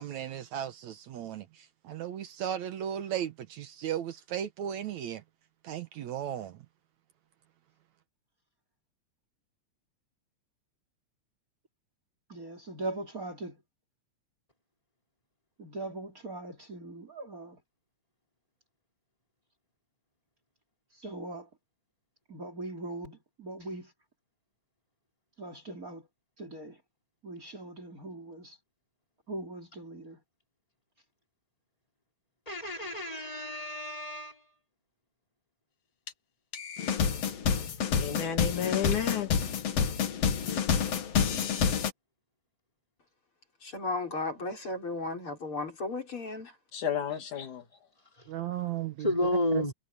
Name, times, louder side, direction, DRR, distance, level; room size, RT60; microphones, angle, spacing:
voice 1, 0.0-1.5 1.8-5.2 5.6-6.5 48.3-49.1 49.5-49.6, right 10 dB, 70° right, 2.3 m, -35 dB
voice 2, 12.3-13.6 15.6-17.6 20.9-21.5 22.3-23.9 25.4-26.1 26.4-26.8 27.2-28.6 29.3-30.2, right 2 dB, 25° right, 3.8 m, -40 dB
voice 3, 32.5-34.4 49.0-49.7, left 1 dB, 10° left, 4.7 m, -31 dB
sound 1, 36.1-36.2 36.5-41.9, left 7 dB, 60° left, 2.6 m, -28 dB
voice 4, 38.0-39.3 39.8-39.9 46.7-47.7, left 8 dB, 75° left, 3.8 m, -32 dB
voice 5, 43.6-46.5, left 3 dB, 40° left, 6.4 m, -35 dB
omnidirectional pair, 3.5 m